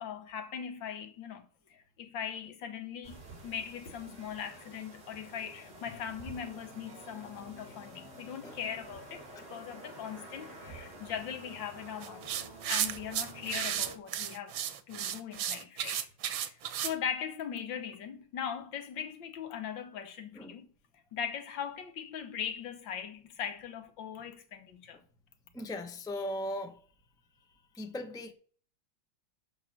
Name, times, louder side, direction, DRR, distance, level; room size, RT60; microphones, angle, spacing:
voice 1, 0.0-12.3 12.7-14.6 14.9-16.1 16.4-20.7 21.1-25.0, left 8 dB, 85° left, 1.8 m, -40 dB
sound 1, 3.0-14.0, right 2 dB, 35° right, 3.1 m, -49 dB
sound 2, 12.0-16.9, right 10 dB, 90° right, 1.6 m, -34 dB
voice 2, 25.5-26.9 27.4-28.3, left 1 dB, 5° left, 0.7 m, -39 dB
7.0 x 5.4 x 7.4 m
omnidirectional pair, 2.0 m